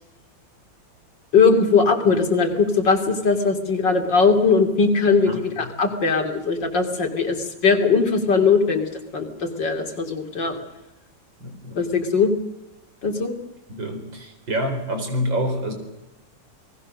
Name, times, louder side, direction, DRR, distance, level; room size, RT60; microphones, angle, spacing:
voice 1, 1.3-8.8 9.1-10.6 11.7-12.3 13.0-13.3, left 4 dB, 70° left, 5 dB, 3.5 m, -20 dB
voice 2, 11.4-11.9 13.7-15.7, equal, 80° right, 5 dB, 5.1 m, -27 dB
29.5 x 19.5 x 6.6 m, 0.93 s
omnidirectional pair, 2.0 m